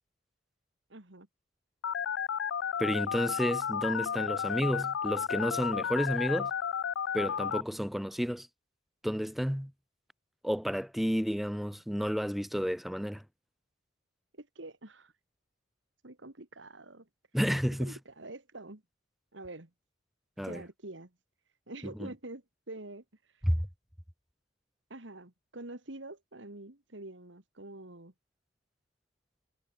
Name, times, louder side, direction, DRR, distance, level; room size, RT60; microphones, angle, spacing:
voice 1, 0.9-1.3 14.3-15.1 16.0-17.1 17.8-18.8 19.3-19.7 20.4-21.1 21.7-23.5 24.9-28.1, right 2 dB, 75° right, 2.5 m, -46 dB
Telephone, 1.8-7.6, left 7 dB, 75° left, 0.5 m, -32 dB
voice 2, 2.8-6.5 7.1-8.5 9.0-9.7 10.4-13.2 17.3-18.0 20.4-20.6 22.0-22.1 23.4-23.7, equal, ahead, 0.9 m, -31 dB
head